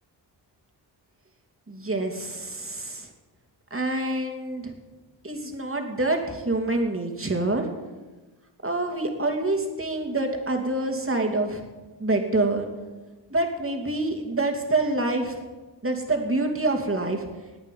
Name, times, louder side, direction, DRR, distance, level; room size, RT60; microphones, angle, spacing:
voice 1, 1.7-3.1 3.7-4.7 5.2-7.6 8.6-11.6 12.0-12.7 13.3-15.4 15.8-17.2, right 2 dB, 25° right, 3 dB, 2.7 m, -26 dB
18.5 x 8.8 x 5.5 m, 1.2 s
cardioid pair, 50°, 49 cm